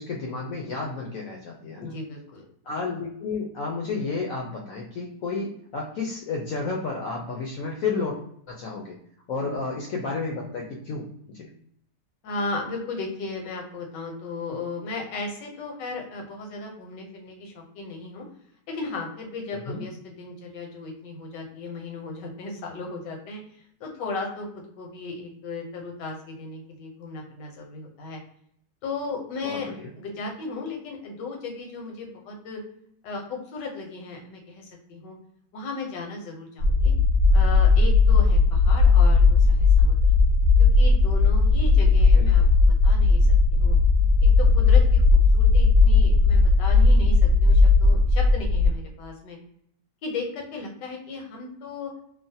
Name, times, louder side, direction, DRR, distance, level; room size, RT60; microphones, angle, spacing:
voice 1, 0.0-1.9 2.6-8.2 8.5-9.0 9.3-11.1 11.3-11.5 19.7-19.8 29.4-29.9 42.1-42.5, left 4 dB, 70° left, -1 dB, 0.8 m, -31 dB
voice 2, 1.8-2.4 9.4-9.6 12.2-18.2 18.7-24.5 24.8-28.2 28.8-29.7 29.9-32.6 33.0-35.2 35.5-36.9 37.3-40.1 40.8-42.4 42.8-43.2 43.5-43.8 44.2-45.0 45.3-49.4 50.0-51.9, left 3 dB, 85° left, 1 dB, 1.4 m, -35 dB
sound 1, 36.6-48.7, left 3 dB, 60° right, 0.8 m, -17 dB
3.0 x 2.0 x 2.7 m, 0.69 s
omnidirectional pair, 1.8 m